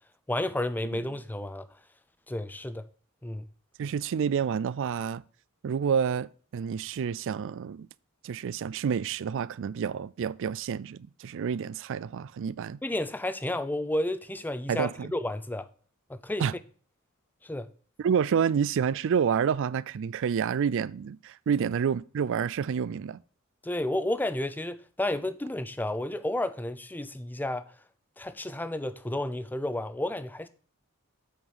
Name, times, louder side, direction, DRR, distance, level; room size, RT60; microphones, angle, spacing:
voice 1, 0.3-1.7 2.3-2.9 3.2-3.5 12.8-15.7 16.1-16.5 17.4-17.7 23.6-27.7 28.2-30.5, left 1 dB, 10° left, 0.4 m, -31 dB
voice 2, 3.8-5.2 5.6-7.9 8.2-12.8 14.7-15.1 16.4-16.5 18.0-23.2, right 7 dB, 60° right, 0.3 m, -29 dB
7.9 x 5.0 x 5.5 m
head